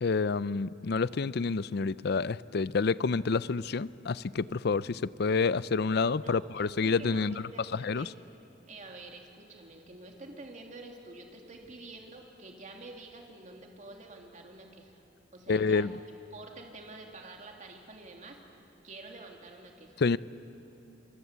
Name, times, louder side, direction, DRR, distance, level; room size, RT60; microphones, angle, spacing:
voice 1, 0.0-7.4 7.7-8.1 15.5-15.9 20.0-20.2, left 4 dB, 60° left, 18 dB, 0.5 m, -28 dB
voice 2, 6.2-8.2 8.7-15.0 15.3-16.0 16.3-18.6 18.8-20.0, right 2 dB, 40° right, 2 dB, 2.9 m, -48 dB
28.0 x 24.0 x 8.2 m, 2.9 s
head